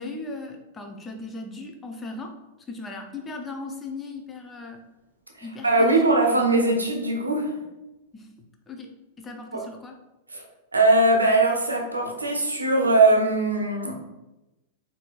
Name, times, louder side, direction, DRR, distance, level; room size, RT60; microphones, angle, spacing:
voice 1, 0.0-2.4 2.7-4.8 5.4-6.0 6.3-6.4 8.1-9.9, left 3 dB, 20° left, 3 dB, 0.5 m, -38 dB
voice 2, 5.6-7.6 9.5-9.6 10.3-10.5 10.7-13.9, right 2 dB, 85° right, 2 dB, 0.6 m, -20 dB
4.4 x 2.6 x 2.3 m, 0.99 s
figure-of-eight pair, 95°, 0 cm